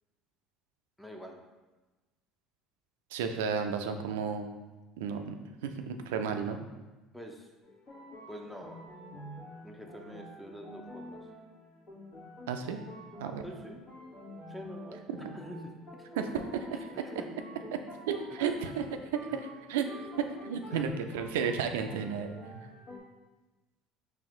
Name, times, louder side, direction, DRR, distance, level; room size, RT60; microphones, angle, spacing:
voice 1, 1.0-1.4 7.1-7.5 8.3-8.8 9.6-11.3 13.4-13.8 14.5-15.7 17.0-17.3 18.4-18.5 19.3-19.4 20.7-20.9, equal, 5° left, 2 dB, 0.6 m, -46 dB
voice 2, 3.1-4.5 5.0-5.4 5.6-6.6 12.5-12.8 13.2-13.4 15.1-15.2 16.2-16.8 17.7-17.8 18.1-18.9 19.7-19.9 20.2-22.7, right 6 dB, 85° right, 7 dB, 0.3 m, -33 dB
sound 1, 7.6-23.0, equal, 55° left, 1.3 m, -48 dB
4.1 x 2.5 x 3.7 m, 1.2 s
hypercardioid pair, 75°, 0 cm